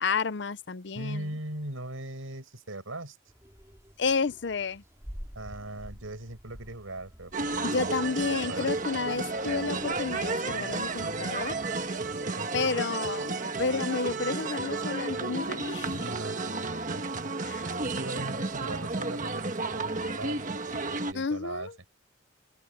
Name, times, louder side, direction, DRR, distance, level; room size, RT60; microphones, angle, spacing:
voice 1, 0.0-1.3 4.0-4.8 7.6-11.6 12.5-16.1 17.4-17.7 21.1-21.7, left 4 dB, 55° left, 0.6 m, -31 dB
voice 2, 0.9-3.2 5.3-8.8 12.1-12.6 16.0-17.0 17.8-21.7, right 1 dB, 90° right, 5.8 m, -40 dB
sound 1, 3.3-10.0, equal, 15° right, 4.2 m, -49 dB
sound 2, 7.3-21.1, right 3 dB, 40° right, 1.4 m, -32 dB
open air
head